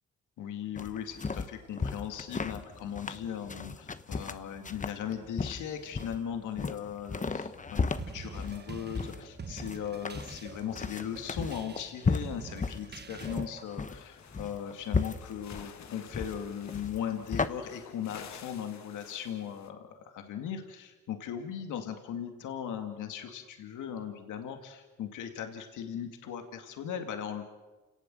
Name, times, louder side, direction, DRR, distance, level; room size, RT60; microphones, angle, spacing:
voice 1, 0.4-27.5, left 8 dB, 85° left, 5 dB, 2.3 m, -38 dB
sound 1, 0.8-17.5, left 4 dB, 25° left, 1.2 m, -35 dB
sound 2, 8.0-13.6, right 5 dB, 35° right, 1.4 m, -46 dB
sound 3, 13.9-19.7, left 8 dB, 65° left, 2.0 m, -52 dB
28.5 x 18.0 x 7.7 m, 1.2 s
cardioid pair, 90°, 30 cm